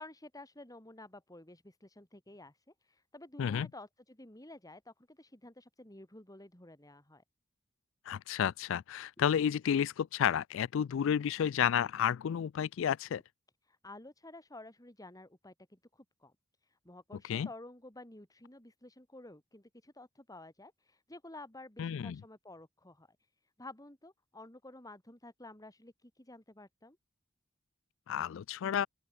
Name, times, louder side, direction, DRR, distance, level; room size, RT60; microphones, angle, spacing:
voice 1, 0.0-7.2 13.6-16.3 16.6-27.0, left 2 dB, 20° left, 3.9 m, -52 dB
voice 2, 8.1-13.2 17.3-17.5 21.8-22.2 28.1-28.9, left 8 dB, 65° left, 0.3 m, -31 dB
open air
head